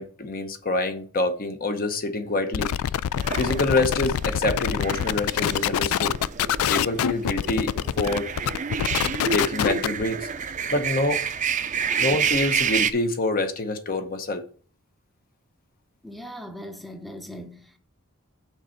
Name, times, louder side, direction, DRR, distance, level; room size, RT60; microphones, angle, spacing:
voice 1, 0.0-2.7 3.4-6.1 6.7-8.3 9.3-10.3 10.7-11.2 12.0-14.4, left 2 dB, 45° left, 0.9 m, -26 dB
sound 1, 2.5-10.0, left 10 dB, 80° left, 0.3 m, -25 dB
sound 2, 3.2-12.9, right 6 dB, 35° right, 0.5 m, -29 dB
voice 2, 16.0-17.8, equal, ahead, 0.7 m, -40 dB
6.5 x 4.3 x 6.4 m
head